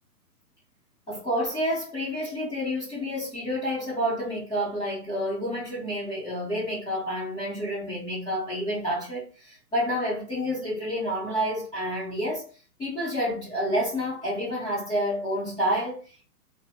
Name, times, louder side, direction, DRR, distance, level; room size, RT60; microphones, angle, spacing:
voice 1, 1.1-12.4 12.8-16.2, equal, 10° left, 0.9 m, -29 dB
2.6 x 2.0 x 2.9 m
hypercardioid pair, 150°, 46 cm